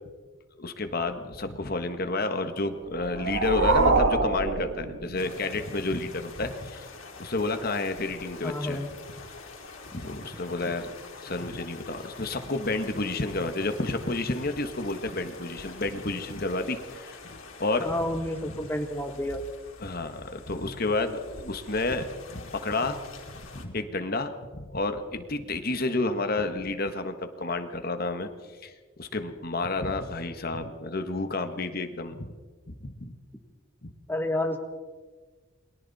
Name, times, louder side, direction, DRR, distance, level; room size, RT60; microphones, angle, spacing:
voice 1, 0.6-6.9 7.2-8.8 9.9-10.9 11.2-17.2 17.6-17.9 19.8-28.3 28.6-28.7 29.0-32.3 32.7-33.1 33.8-33.9, left 2 dB, 50° left, 8 dB, 1.5 m, -30 dB
sound 1, 2.9-5.5, right 3 dB, 70° right, 1.7 m, -25 dB
sound 2, 5.2-23.7, left 3 dB, 85° left, 4.1 m, -46 dB
voice 2, 8.4-8.9 17.8-19.4 34.1-34.6, left 1 dB, 10° left, 4 dB, 1.5 m, -30 dB
29.0 x 22.5 x 4.2 m, 1.4 s
head